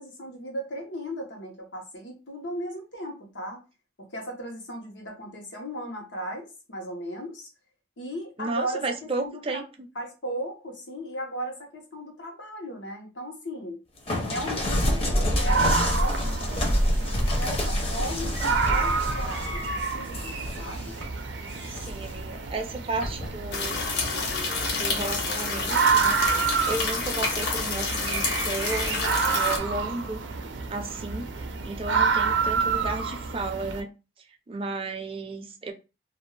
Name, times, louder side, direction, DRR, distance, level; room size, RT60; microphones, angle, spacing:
voice 1, 0.0-3.6 4.0-7.5 8.0-9.6 9.9-13.8 14.3-20.9, equal, 85° left, 1 dB, 1.0 m, -36 dB
voice 2, 8.4-9.9 21.7-23.8 24.7-30.2 30.7-31.3 31.6-33.9 34.5-35.7, right 3 dB, 30° right, 4 dB, 0.4 m, -33 dB
sound 1, 14.1-21.1 21.5-22.2 23.0-23.3, equal, 30° left, 0.6 m, -27 dB
sound 2, 15.4-33.8, right 5 dB, 85° right, 0.5 m, -29 dB
sound 3, 23.5-29.6, left 4 dB, 70° left, 0.7 m, -29 dB
2.5 x 2.3 x 3.2 m, 0.30 s
head